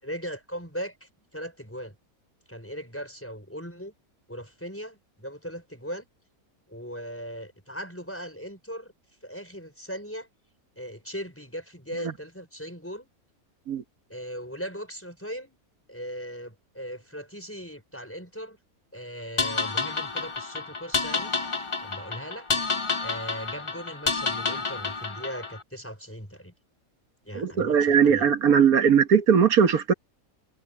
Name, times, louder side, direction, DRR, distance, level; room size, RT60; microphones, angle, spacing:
voice 1, 0.0-2.0 2.5-3.9 4.3-6.1 6.7-8.9 9.2-10.3 10.8-13.1 14.1-15.6 15.9-18.6 18.9-22.8 23.0-26.5 27.2-28.3, equal, 10° left, 5.2 m, -39 dB
sound 1, 19.4-25.6, left 4 dB, 30° left, 0.7 m, -29 dB
voice 2, 27.4-29.9, right 7 dB, 85° right, 1.8 m, -19 dB
omnidirectional pair, 1.5 m